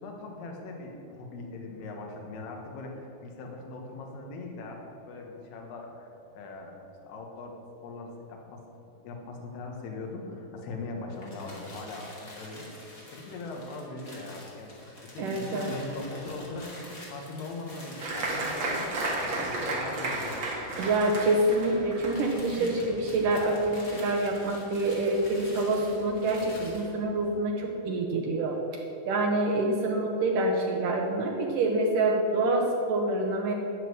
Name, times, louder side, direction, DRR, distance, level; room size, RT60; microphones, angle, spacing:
voice 1, 0.0-4.8 5.1-6.7 7.0-8.6 9.0-14.7 15.1-20.9, left 2 dB, 70° left, 1 dB, 3.4 m, -40 dB
sound 1, 11.1-26.9, left 1 dB, 30° left, 1.8 m, -47 dB
voice 2, 15.2-15.7 20.8-33.5, right 2 dB, 75° right, 1 dB, 1.9 m, -27 dB
Applause, 18.0-25.1 25.3-26.1 26.5-26.6 26.9-27.3, right 2 dB, 55° right, 1.3 m, -34 dB
13.5 x 5.9 x 9.7 m, 2.9 s
omnidirectional pair, 5.2 m